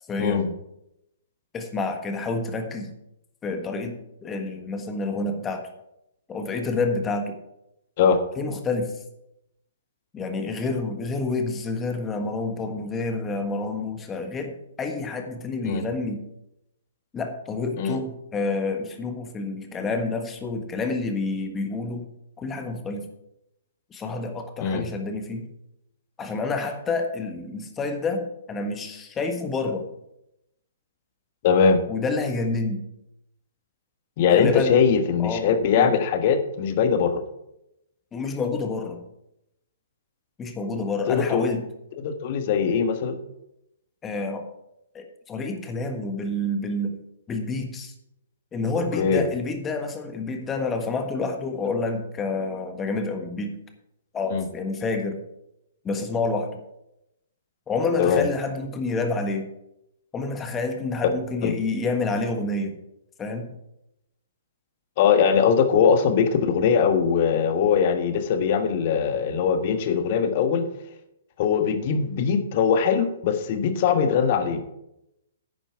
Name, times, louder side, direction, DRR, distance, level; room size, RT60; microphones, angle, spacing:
voice 1, 0.1-0.5 1.5-2.9 3.4-5.6 6.3-7.4 8.3-9.0 10.1-16.2 17.1-22.1 22.4-23.1 23.9-25.5 26.2-29.8 31.9-32.8 34.3-34.8 35.2-35.5 35.8-35.9 38.1-39.0 40.4-41.7 44.0-44.5 44.9-47.0 47.3-47.9 48.5-53.6 54.1-55.2 55.8-56.5 57.7-59.5 60.1-62.8 63.2-63.5, left 3 dB, 15° left, 5 dB, 1.4 m, -28 dB
voice 2, 31.4-31.8 34.2-37.2 41.1-41.5 42.0-43.2 48.7-49.2 54.3-54.5 58.0-58.3 61.4-61.5 65.0-70.6 71.4-74.6, left 6 dB, 40° left, 8 dB, 1.3 m, -21 dB
11.0 x 8.9 x 4.7 m, 0.83 s
figure-of-eight pair, 120°, 0 cm